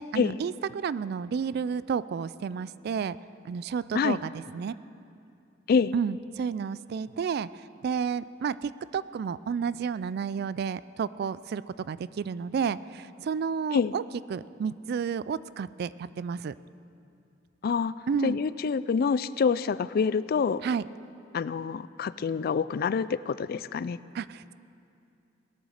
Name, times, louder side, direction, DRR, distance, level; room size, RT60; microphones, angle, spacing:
voice 1, 0.0-3.2 3.4-4.7 5.9-7.5 7.8-14.0 14.3-16.5 18.1-18.4 20.6-20.8 24.1-24.5, right 6 dB, 55° right, 17 dB, 0.3 m, -31 dB
voice 2, 17.6-17.9 18.2-20.6 21.3-24.0, left 5 dB, 50° left, 17 dB, 0.3 m, -26 dB
17.5 x 10.0 x 6.4 m, 2.6 s
head